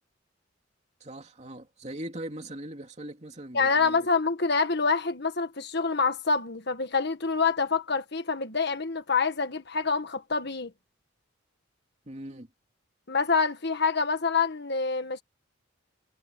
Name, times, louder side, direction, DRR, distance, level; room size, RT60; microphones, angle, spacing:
voice 1, 1.0-4.1 12.1-12.5, right 1 dB, 35° right, 2.8 m, -40 dB
voice 2, 3.5-10.7 13.1-15.2, left 4 dB, 55° left, 1.5 m, -26 dB
head